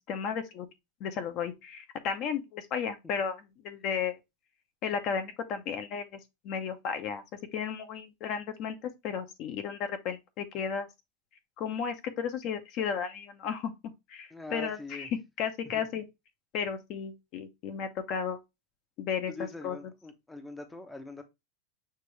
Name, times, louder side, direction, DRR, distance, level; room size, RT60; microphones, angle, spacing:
voice 1, 0.1-0.7 1.0-4.2 4.8-6.2 6.4-7.2 7.5-10.9 11.6-13.7 14.1-15.1 15.4-16.0 16.5-18.4 19.0-19.3 19.6-19.8, left 7 dB, 45° left, 0.7 m, -34 dB
voice 2, 14.3-15.1 15.7-15.9 19.3-21.2, left 3 dB, 10° left, 0.7 m, -43 dB
6.6 x 2.5 x 3.1 m
supercardioid pair, 145°, 0 cm